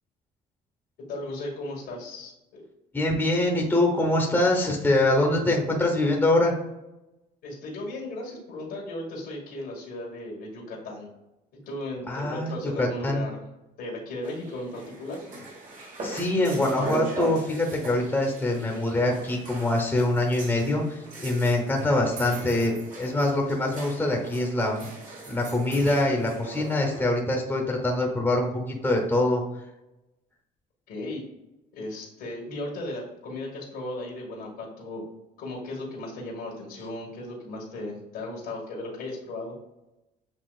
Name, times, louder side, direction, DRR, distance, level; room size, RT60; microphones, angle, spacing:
voice 1, 1.0-2.6 7.4-11.1 11.6-13.5 13.8-15.2 30.9-31.2 31.7-35.0 35.4-39.5, left 1 dB, 75° left, -3 dB, 1.6 m, -36 dB
voice 2, 2.9-6.5 12.1-13.3 16.0-24.9 25.3-29.4, left 1 dB, 10° left, 0 dB, 1.0 m, -24 dB
sound 1, 14.2-27.0, right 2 dB, 50° right, 1.5 m, -39 dB
7.7 x 2.8 x 2.4 m, 0.97 s
cardioid pair, 110°, 17 cm